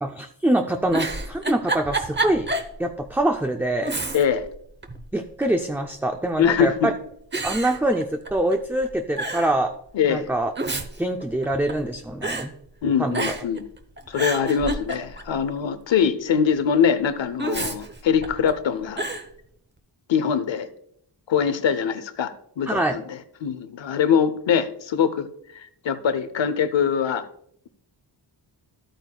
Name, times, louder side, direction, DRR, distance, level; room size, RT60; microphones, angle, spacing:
voice 1, 0.0-2.5 2.8-3.9 5.1-6.9 7.4-9.7 10.1-10.5 11.0-12.5 13.0-13.2 22.7-23.0, right 1 dB, 5° right, 4 dB, 0.4 m, -24 dB
Giggle, 0.9-2.7 3.1-3.2 3.8-4.5 4.8-5.6 6.4-6.8 7.3-8.5 8.8-8.9 9.2-9.5 10.3-11.9 12.2-12.5 13.1-13.6 14.0-15.3 17.4-18.5 19.0-19.3, right 2 dB, 25° right, 0.8 m, -29 dB
voice 2, 4.1-4.5 6.4-6.9 9.9-10.3 12.8-13.7 14.1-19.0 20.1-20.7 21.3-25.3 25.5-27.3, left 7 dB, 85° left, 13 dB, 0.8 m, -23 dB
12.5 x 8.9 x 2.3 m, 0.70 s
wide cardioid pair, 130°, 44 cm